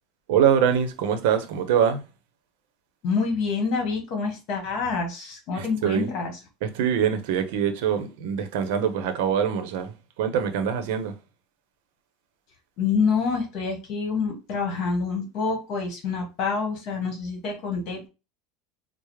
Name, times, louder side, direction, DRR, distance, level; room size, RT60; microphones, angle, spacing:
voice 1, 0.3-2.0 5.5-6.1 6.6-11.2, right 8 dB, 70° right, 0.7 m, -24 dB
voice 2, 3.0-6.3 12.8-18.1, left 5 dB, 45° left, 1.4 m, -27 dB
4.8 x 2.0 x 3.1 m
supercardioid pair, 160°, 0 cm